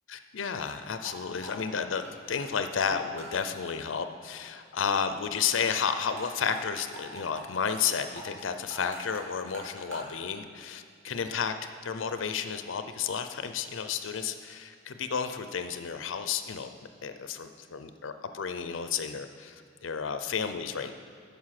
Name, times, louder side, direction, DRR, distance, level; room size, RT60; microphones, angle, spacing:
voice 1, 0.1-16.7 17.0-20.9, left 6 dB, 80° left, 9 dB, 0.5 m, -32 dB
sound 1, 0.6-0.7 1.0-1.1 1.4-2.5 2.8-2.9 3.2-3.3 3.6-3.7 4.0-4.1 4.4-4.5 4.8-4.9 5.1-5.2 5.5-5.9 6.2-6.3 6.6-6.7 6.9-7.4 7.7-7.9 8.2-10.1, right 2 dB, 80° right, 2.7 m, -45 dB
9.6 x 6.8 x 5.9 m, 2.2 s
head